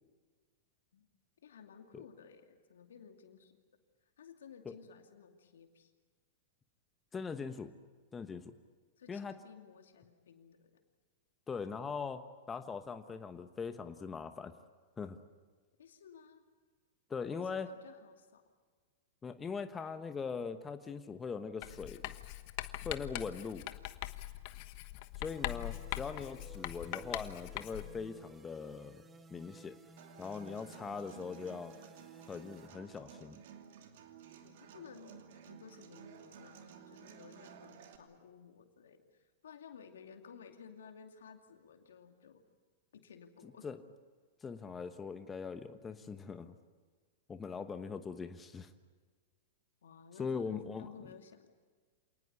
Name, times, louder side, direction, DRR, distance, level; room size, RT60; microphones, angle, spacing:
voice 1, 1.4-3.5 4.2-5.9 9.0-10.7 15.8-16.4 17.4-18.4 34.4-35.2 35.5-42.4 42.9-43.7 49.8-51.5, left 6 dB, 75° left, 5 dB, 2.5 m, -55 dB
voice 2, 7.1-7.7 8.1-8.5 9.1-9.4 11.5-14.5 15.0-15.2 17.1-17.7 19.2-22.0 22.8-23.6 25.2-29.0 29.3-29.7 30.2-31.7 32.3-33.4 43.4-43.8 44.4-46.5 47.3-48.7 50.2-50.9, left 5 dB, 20° left, 9 dB, 1.1 m, -41 dB
Writing, 21.6-28.0, left 17 dB, 50° left, 1.2 m, -42 dB
sound 1, 25.3-32.7, right 2 dB, 20° right, 2.0 m, -58 dB
Human voice / Acoustic guitar, 30.0-38.0, right 8 dB, 60° right, 2.7 m, -54 dB
27.0 x 19.0 x 8.5 m, 1.5 s
hypercardioid pair, 105°, 0 cm